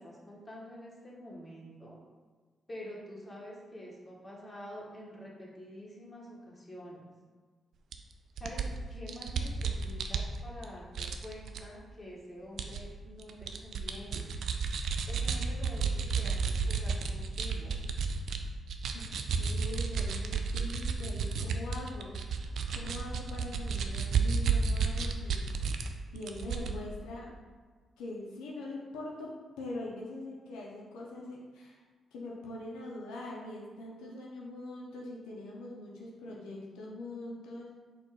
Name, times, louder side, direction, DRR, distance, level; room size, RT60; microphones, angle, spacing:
voice 1, 0.0-2.0 2.7-7.1 8.4-14.4 15.1-17.9, equal, 25° left, -5 dB, 1.5 m, -47 dB
sound 1, 7.9-8.0 8.4-10.6 10.9-11.6 12.6-12.8 13.2-18.4 18.7-25.9 26.1-26.7, right 5 dB, 70° right, 0.3 m, -32 dB
voice 2, 19.4-25.7 26.1-27.3 28.0-31.8 32.1-37.7, left 2 dB, 90° left, -3 dB, 0.6 m, -43 dB
4.3 x 2.4 x 4.6 m, 1.5 s
supercardioid pair, 55°, 0 cm